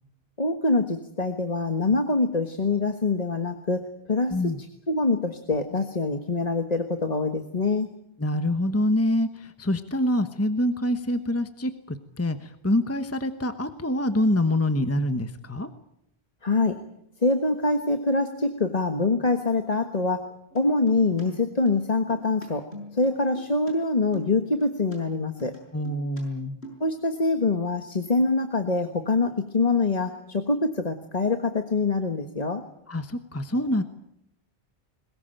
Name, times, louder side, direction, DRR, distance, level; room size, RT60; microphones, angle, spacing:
voice 1, 0.4-4.5 4.9-7.9 16.4-16.8 17.2-20.2 20.5-22.7 22.9-25.6 26.8-32.6, left 3 dB, 40° left, 6 dB, 1.5 m, -24 dB
voice 2, 8.2-15.7 25.7-26.6 32.9-33.8, left 1 dB, 15° left, 9 dB, 1.1 m, -26 dB
sound 1, 20.5-21.2 21.5-23.7 24.0-25.0 25.4-26.2 26.5-26.9, right 1 dB, 90° left, 6.7 m, -43 dB
22.0 x 20.5 x 9.1 m, 0.77 s
omnidirectional pair, 1.1 m